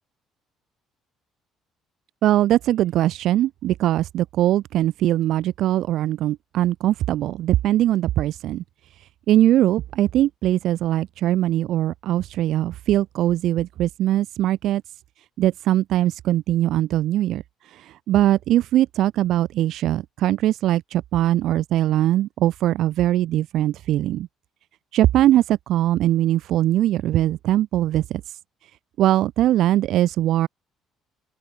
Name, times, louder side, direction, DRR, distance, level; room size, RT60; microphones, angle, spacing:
voice 1, 2.2-8.6 9.3-14.8 15.4-17.4 17.8-24.3 24.9-28.2 29.0-30.5, right 13 dB, 55° right, 0.7 m, -21 dB
open air
cardioid pair, 170°, 0 cm